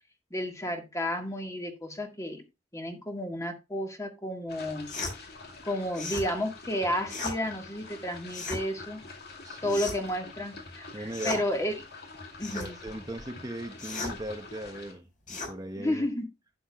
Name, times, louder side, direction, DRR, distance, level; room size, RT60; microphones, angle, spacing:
voice 1, 0.3-2.4 2.7-4.9 5.6-9.0 9.6-11.8 12.4-12.8 15.8-16.3, equal, 20° left, 1.8 m, -32 dB
sound 1, 4.5-14.9, left 3 dB, 60° left, 2.3 m, -46 dB
sound 2, 4.9-5.2 5.9-6.3 7.1-7.4 8.3-8.6 9.7-10.1 11.1-11.4 12.4-12.7 13.8-14.2 15.3-15.5, left 3 dB, 45° left, 5.4 m, -35 dB
voice 2, 9.4-9.8 10.9-11.4 12.5-16.1, right 1 dB, 20° right, 0.9 m, -39 dB
11.5 x 8.9 x 2.4 m
head